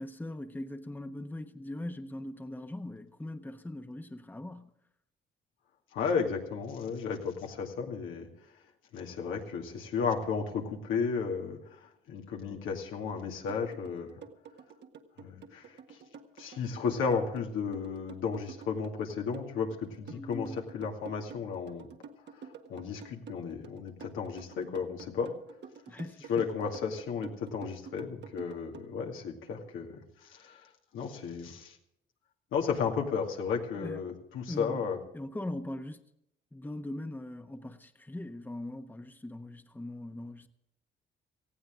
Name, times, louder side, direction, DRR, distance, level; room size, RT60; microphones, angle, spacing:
voice 1, 0.0-4.7 20.1-20.6 25.9-26.4 33.7-34.0 34.5-34.8 35.1-36.0 36.5-40.5, left 1 dB, 10° left, 1.1 m, -40 dB
voice 2, 5.9-8.3 8.9-14.1 15.2-15.7 16.4-21.9 22.4-25.3 26.3-30.7 30.9-31.8 32.5-35.0, left 6 dB, 90° left, 2.4 m, -34 dB
sound 1, 13.5-28.9, right 6 dB, 60° right, 1.5 m, -48 dB
18.5 x 15.0 x 3.7 m
cardioid pair, 90°, 20 cm